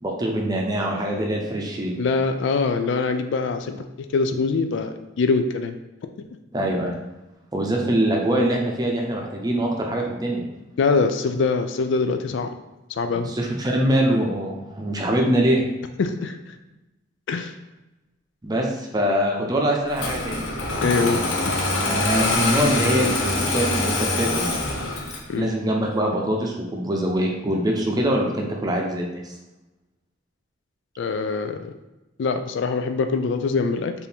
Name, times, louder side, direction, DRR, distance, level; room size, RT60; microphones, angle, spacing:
voice 1, 0.0-1.9 6.5-6.9 7.5-10.4 13.1-15.6 18.4-20.4 21.8-24.5 25.4-29.3, right 1 dB, 20° right, 0 dB, 0.7 m, -23 dB
voice 2, 2.0-3.8 4.1-5.7 6.2-6.3 10.8-12.5 12.9-13.3 16.0-16.5 17.3-17.5 20.8-21.5 25.3-25.5 31.0-31.7 32.2-33.9, left 4 dB, 70° left, 8 dB, 0.3 m, -23 dB
Engine starting, 19.9-25.3, left 2 dB, 85° left, 0.7 m, -24 dB
4.4 x 2.6 x 3.5 m, 1.0 s
head